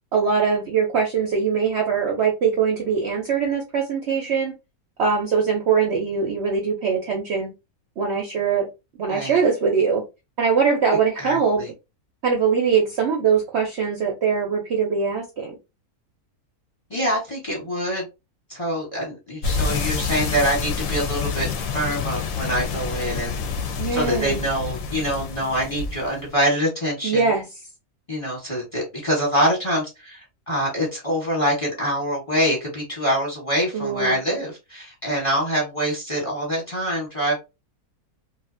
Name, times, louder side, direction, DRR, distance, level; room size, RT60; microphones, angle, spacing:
voice 1, 0.1-4.5 5.0-7.5 8.0-8.7 9.0-10.0 10.4-11.6 12.2-15.6 23.8-24.4 27.0-27.5 33.7-34.1, right 6 dB, 65° right, 1 dB, 0.7 m, -22 dB
voice 2, 9.1-9.4 11.2-11.7 16.9-18.1 18.5-21.5 21.7-23.3 23.9-27.2 28.1-30.2 30.5-37.4, equal, 25° left, -3 dB, 1.0 m, -25 dB
sound 1, 19.4-26.3, left 5 dB, 70° left, 0.9 m, -28 dB
2.6 x 2.4 x 2.4 m, 0.26 s
omnidirectional pair, 1.6 m